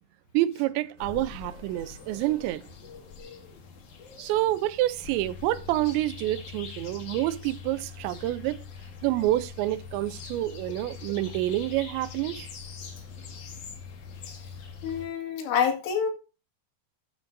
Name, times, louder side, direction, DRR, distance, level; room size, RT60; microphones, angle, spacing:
voice 1, 0.3-2.6 4.2-8.6 9.0-12.5, right 15 dB, 85° right, 3.0 m, -28 dB
sound 1, 1.0-15.1, left 6 dB, 50° left, 3.0 m, -43 dB
voice 2, 14.8-16.1, left 7 dB, 80° left, 4.3 m, -27 dB
13.0 x 10.5 x 2.7 m
omnidirectional pair, 5.1 m